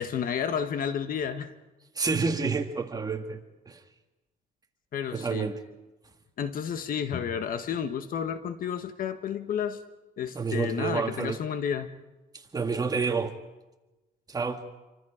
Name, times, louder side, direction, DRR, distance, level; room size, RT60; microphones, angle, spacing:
voice 1, 0.0-1.5 4.9-5.5 6.4-9.8 10.2-11.9, left 8 dB, 55° left, 1.4 m, -31 dB
voice 2, 2.0-3.4 3.7-3.8 5.1-5.6 10.3-11.4 12.5-13.3 14.3-14.6, right 4 dB, 20° right, 1.9 m, -29 dB
27.5 x 25.0 x 5.1 m
cardioid pair, 110°, 17 cm